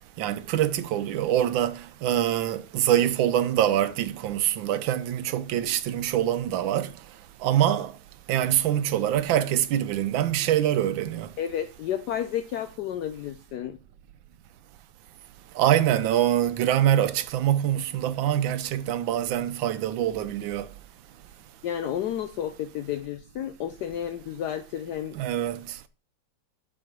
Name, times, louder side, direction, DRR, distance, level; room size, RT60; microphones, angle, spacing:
voice 1, 0.2-6.9 7.4-7.9 8.3-11.3 15.6-20.7 25.1-25.8, right 11 dB, 90° right, 1.4 m, -24 dB
voice 2, 11.4-13.8 21.6-25.2, left 10 dB, 70° left, 1.1 m, -31 dB
7.6 x 4.9 x 5.9 m
omnidirectional pair, 2.0 m